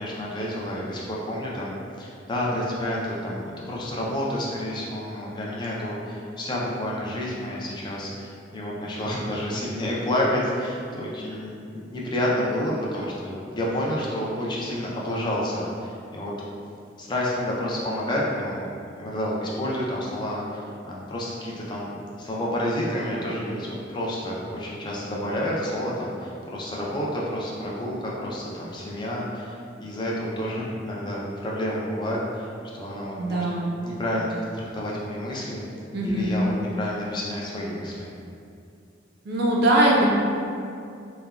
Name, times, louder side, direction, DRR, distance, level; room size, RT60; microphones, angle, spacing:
voice 1, 0.0-16.3 17.0-18.7 19.0-33.5 33.8-34.3 34.5-35.6 36.0-38.1, left 1 dB, 25° left, -4 dB, 0.4 m, -29 dB
voice 2, 33.2-33.7 35.9-36.4 39.3-40.1, right 1 dB, 55° right, -3 dB, 0.4 m, -21 dB
3.1 x 2.2 x 2.3 m, 2.4 s
head